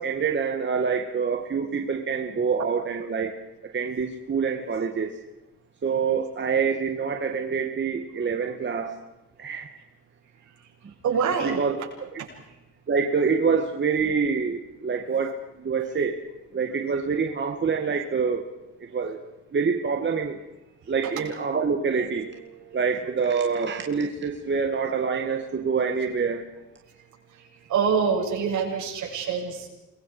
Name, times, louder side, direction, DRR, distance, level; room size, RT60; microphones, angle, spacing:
voice 1, 0.0-3.3 3.6-5.1 5.8-9.0 9.4-9.7 11.4-11.8 12.1-12.2 12.9-16.2 16.5-18.4 18.9-19.2 19.5-20.4 20.9-26.5, right 5 dB, 40° right, 3 dB, 2.2 m, -26 dB
voice 2, 11.0-11.6 12.2-12.3 21.0-21.1 27.3-27.4 27.7-29.7, right 6 dB, 70° right, -1 dB, 7.8 m, -25 dB
29.0 x 22.5 x 5.1 m, 0.97 s
cardioid pair, 90°, 30 cm